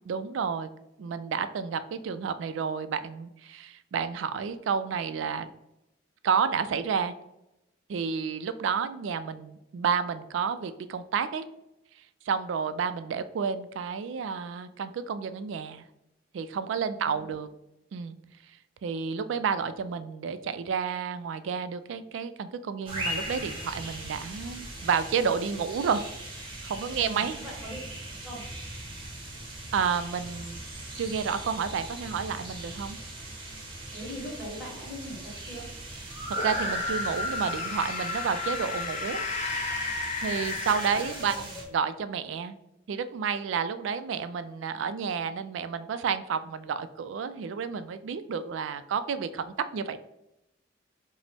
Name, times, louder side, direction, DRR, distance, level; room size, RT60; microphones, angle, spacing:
voice 1, 0.1-0.7 1.0-5.5 6.2-7.1 7.9-11.5 12.3-15.9 16.3-17.5 17.9-18.2 18.8-26.1 26.6-27.4 29.7-30.6 31.0-33.0 36.4-39.2 40.2-42.6 42.9-50.0, right 6 dB, 75° right, 12 dB, 0.3 m, -30 dB
voice 2, 16.9-17.4 27.0-27.8 28.2-28.4 33.9-35.6 41.2-41.6, equal, 5° right, -6 dB, 1.4 m, -41 dB
sound 1, 22.9-41.6, right 1 dB, 25° right, 0.9 m, -39 dB
sound 2, 36.3-41.5, left 4 dB, 35° left, 0.3 m, -33 dB
5.0 x 2.0 x 3.4 m, 0.87 s
head